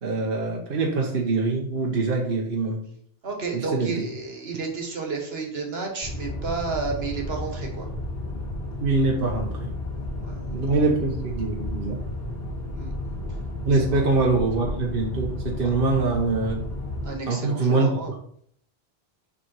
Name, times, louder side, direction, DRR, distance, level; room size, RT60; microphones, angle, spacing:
voice 1, 0.0-2.8 3.5-4.0 8.8-9.7 10.5-12.0 13.6-16.7 17.3-17.9, right 3 dB, 60° right, 0 dB, 1.0 m, -24 dB
voice 2, 3.2-7.9 10.2-10.8 12.7-12.9 13.9-14.0 15.6-15.7 17.0-18.1, right 4 dB, 80° right, 2 dB, 1.6 m, -32 dB
sound 1, 6.0-17.1, left 1 dB, 65° left, 2.0 m, -32 dB
6.3 x 3.7 x 4.5 m, 0.63 s
omnidirectional pair, 1.0 m